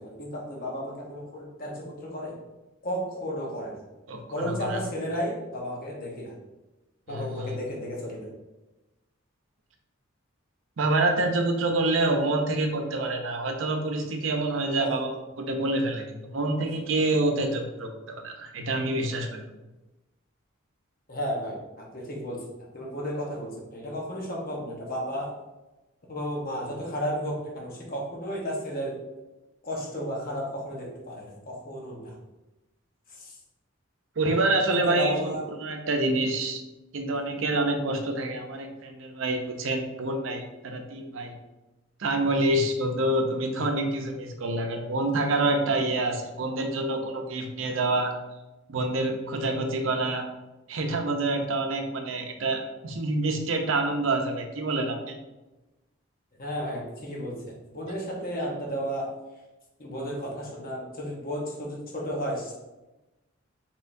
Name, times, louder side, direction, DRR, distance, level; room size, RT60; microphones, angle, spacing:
voice 1, 0.0-2.4 2.8-3.8 4.3-6.3 7.1-8.3 14.8-14.9 21.1-22.4 22.7-25.3 26.1-29.0 29.6-32.2 33.1-33.4 34.8-35.4 56.4-59.1 59.8-62.6, equal, 45° left, -2 dB, 1.0 m, -33 dB
voice 2, 4.1-4.8 7.1-7.6 10.8-15.1 15.4-19.4 34.2-35.2 35.6-36.6 36.9-41.3 42.0-48.1 48.7-50.2 50.7-55.2, right 2 dB, 70° right, 4 dB, 0.6 m, -27 dB
4.3 x 3.7 x 2.6 m, 1.0 s
head